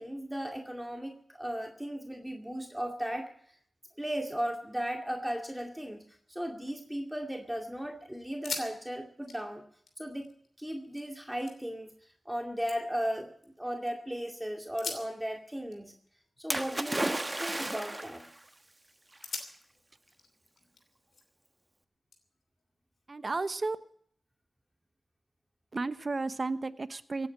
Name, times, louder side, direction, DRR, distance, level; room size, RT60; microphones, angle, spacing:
voice 1, 0.0-3.3 4.0-6.0 6.3-9.6 10.0-10.3 10.6-13.3 13.6-15.9 16.4-17.1 17.4-18.2, equal, 10° right, 2 dB, 2.3 m, -36 dB
sound 1, 6.7-7.4 7.8-7.9 8.3-8.7 9.0-11.0 11.5-12.0 12.4-13.9 14.6-17.5 17.8-18.2 18.6-18.8 19.2-21.5 22.1-23.3, left 4 dB, 90° left, 2.9 m, -45 dB
Splash splatter, 16.5-18.3 19.2-19.3, right 1 dB, 25° right, 1.3 m, -33 dB
voice 2, 23.1-23.8 25.7-27.3, right 3 dB, 50° right, 12 dB, 1.1 m, -33 dB
16.5 x 9.3 x 8.6 m, 0.64 s
cardioid pair, 50°, 0 cm